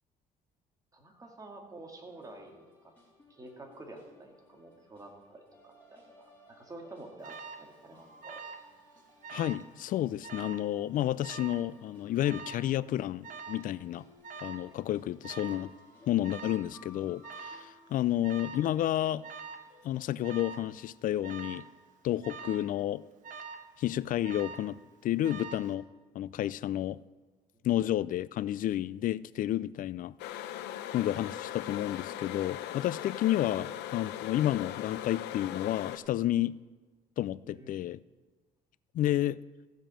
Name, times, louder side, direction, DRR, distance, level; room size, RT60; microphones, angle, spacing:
voice 1, 0.9-2.9 3.3-8.4 27.5-27.7 37.4-37.9, right 2 dB, 20° right, 2 dB, 2.1 m, -49 dB
sound 1, 2.1-20.8, left 2 dB, 10° left, 3.2 m, -60 dB
Alarm, 7.2-7.7 8.2-8.7 9.0-9.7 10.2-10.7 11.2-11.7 12.2-12.7 13.2-13.7 14.2-14.7 15.2-15.7 16.2-16.7 17.2-17.7 18.2-18.7 19.2-19.7 20.2-20.7 21.2-21.7 22.2-22.7 23.2-23.7 24.2-24.7 25.2-25.7, right 5 dB, 50° right, 1.1 m, -44 dB
voice 2, 9.3-14.1 14.4-15.7 16.1-19.2 19.8-21.7 22.0-23.0 23.8-25.8 26.1-27.0 27.6-30.5 30.9-36.5 37.2-38.0 38.9-39.4, left 13 dB, 55° left, 19 dB, 0.4 m, -31 dB
sound 2, 30.2-36.0, left 11 dB, 85° left, 0.7 m, -39 dB
14.5 x 5.2 x 7.4 m, 1.3 s
cardioid pair, 110°, 17 cm